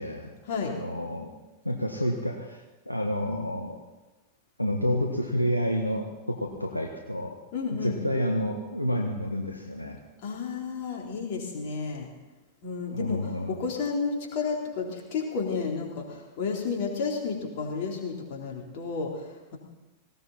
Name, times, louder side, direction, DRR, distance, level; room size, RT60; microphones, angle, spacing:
voice 1, 0.0-0.3 0.6-1.3 1.6-3.8 4.6-7.4 7.8-10.0 12.9-13.5, equal, 85° left, 2 dB, 1.4 m, -29 dB
voice 2, 7.5-8.0 10.2-12.1 12.6-19.6, left 5 dB, 50° left, 0 dB, 3.9 m, -32 dB
19.0 x 17.0 x 4.3 m, 1.1 s
figure-of-eight pair, 90°, 0 cm